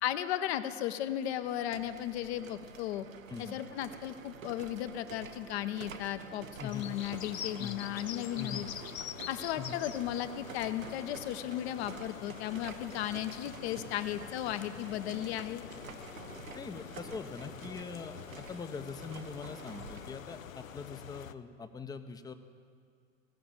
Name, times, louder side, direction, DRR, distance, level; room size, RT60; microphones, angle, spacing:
voice 1, 0.0-3.1 3.4-8.7 9.3-15.6, left 12 dB, 55° left, 11 dB, 0.8 m, -35 dB
sound 1, 0.8-19.8, right 9 dB, 60° right, 1.2 m, -57 dB
sound 2, 1.3-20.2, right 6 dB, 85° right, 0.8 m, -50 dB
sound 3, 6.7-21.3, left 9 dB, 85° left, 0.5 m, -46 dB
voice 2, 8.4-8.7 9.6-9.8 16.5-22.3, left 5 dB, 10° left, 9 dB, 0.5 m, -43 dB
16.5 x 5.9 x 8.8 m, 2.2 s
figure-of-eight pair, 90°, 39 cm